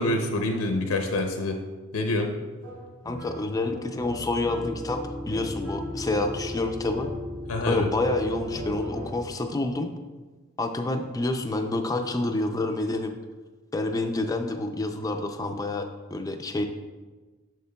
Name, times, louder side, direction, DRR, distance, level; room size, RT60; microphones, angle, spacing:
voice 1, 0.0-1.6 1.9-2.3 7.5-7.9, left 2 dB, 85° left, 3 dB, 0.6 m, -26 dB
sound 1, 2.6-7.6 8.0-9.5, equal, 75° right, 1.7 m, -42 dB
voice 2, 3.0-5.0 5.3-7.1 7.7-9.9 10.6-13.2 13.7-16.6, left 2 dB, 15° left, 5 dB, 0.3 m, -28 dB
sound 2, 4.0-9.0, left 1 dB, 25° right, 1.7 m, -36 dB
6.7 x 6.4 x 2.2 m, 1.3 s
head